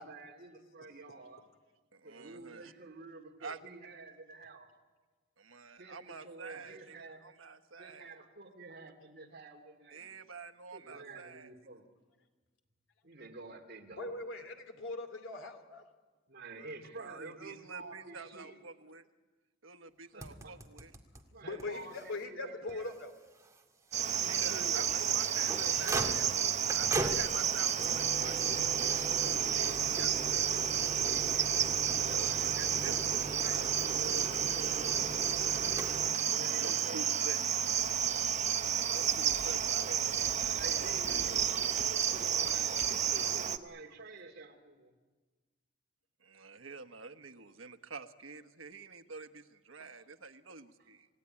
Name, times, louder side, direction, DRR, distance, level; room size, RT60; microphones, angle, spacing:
voice 1, 0.0-1.4 2.0-4.7 5.8-7.3 7.8-10.1 10.7-11.8 13.0-14.1 16.3-18.6 20.1-20.6 21.3-22.9 24.1-25.2 25.6-26.6 29.1-30.3 30.9-31.5 31.9-32.7 33.3-35.2 36.2-37.0 40.6-44.9 49.8-49.9, right 2 dB, 55° right, 3 dB, 2.7 m, -49 dB
voice 2, 1.9-2.7 3.4-3.7 5.4-8.2 9.9-11.5 16.5-19.1 19.6-20.9 21.4-22.1 24.1-26.2 26.7-30.5 31.5-34.5 36.6-37.4 38.9-42.0 46.2-51.1, right 4 dB, 90° right, 10 dB, 1.2 m, -48 dB
voice 3, 14.0-15.8 21.4-23.1, left 2 dB, 75° left, 6 dB, 2.9 m, -41 dB
sound 1, 20.2-21.2 21.6-21.7 21.9-22.0 22.7-22.8 24.8-36.1, right 2 dB, 15° right, 2.1 m, -40 dB
Cricket, 23.9-43.6, right 8 dB, 35° right, 0.9 m, -31 dB
27.5 x 17.0 x 9.8 m, 1.3 s
head